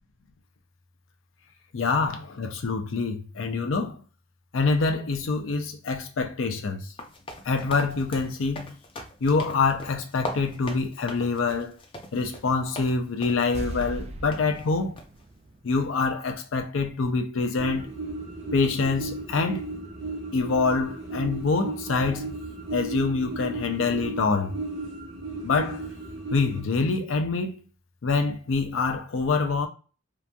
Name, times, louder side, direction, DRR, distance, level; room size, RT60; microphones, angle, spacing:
voice 1, 1.7-4.0 4.5-6.9 7.4-8.7 9.2-11.8 12.1-15.0 15.6-17.9 18.5-19.6 20.3-22.3 22.7-24.5 25.4-25.8 26.3-27.6 28.0-29.7, left 4 dB, 90° left, 0.5 m, -25 dB
sound 1, 7.0-12.9 13.2-13.5 13.8-13.9 14.3-14.4 15.0-15.2, left 1 dB, 30° left, 0.4 m, -40 dB
sound 2, 13.5-16.7 17.0-17.1, right 1 dB, 35° right, 0.3 m, -39 dB
sound 3, 17.6-26.6, right 2 dB, 75° right, 0.9 m, -35 dB
2.9 x 2.4 x 2.2 m
head